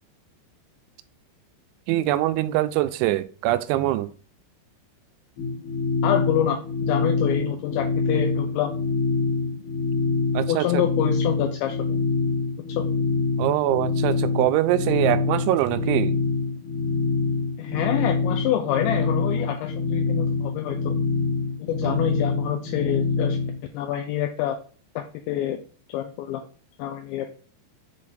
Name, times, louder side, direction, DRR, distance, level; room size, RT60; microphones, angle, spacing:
voice 1, 1.9-4.1 10.3-10.7 13.4-16.1 21.8-22.0, right 15 dB, 85° right, 2.8 m, -23 dB
sound 1, 5.4-23.6, left 4 dB, 60° left, 3.3 m, -25 dB
voice 2, 6.0-6.6 6.9-8.7 10.5-12.0 12.7-12.9 17.6-20.9 21.6-23.4 23.7-24.6 25.0-25.6 25.9-26.4 26.8-27.3, left 11 dB, 80° left, 2.8 m, -27 dB
7.6 x 4.3 x 3.9 m
omnidirectional pair, 5.5 m